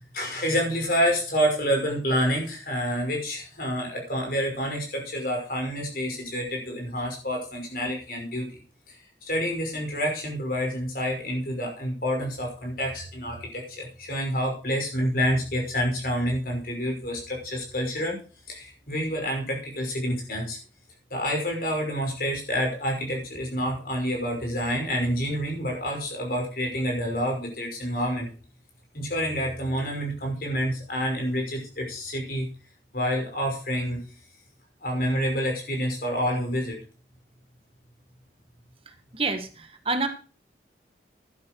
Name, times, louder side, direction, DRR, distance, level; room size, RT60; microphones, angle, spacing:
voice 1, 0.1-8.6 8.9-9.0 9.3-18.2 18.5-20.6 21.1-28.3 28.9-32.5 32.9-34.0 34.8-36.8, equal, 50° left, 1 dB, 5.8 m, -28 dB
voice 2, 38.8-40.1, right 3 dB, 30° right, 7 dB, 1.5 m, -29 dB
11.5 x 10.5 x 4.6 m, 0.37 s
head